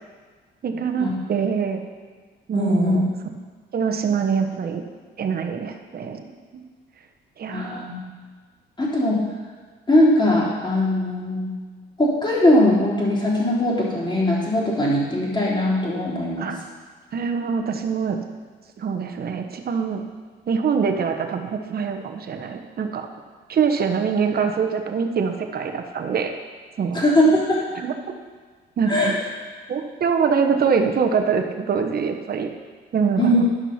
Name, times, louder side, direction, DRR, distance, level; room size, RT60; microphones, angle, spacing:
voice 1, 0.6-1.8 2.5-3.1 3.7-4.8 5.2-6.6 7.4-7.9 16.4-16.6 17.1-18.2 18.8-20.0 20.5-23.1 23.5-26.3 26.8-27.0 27.7-28.1 28.8-29.1 29.7-32.5 32.9-33.5, right 6 dB, 50° right, 5 dB, 1.1 m, -24 dB
voice 2, 2.5-3.0 7.5-7.9 8.8-9.2 9.9-11.5 12.0-16.5 26.9-27.6 28.9-29.1 33.2-33.4, left 1 dB, 20° left, -5 dB, 3.3 m, -20 dB
11.5 x 5.8 x 5.8 m, 1.5 s
cardioid pair, 90°, 20 cm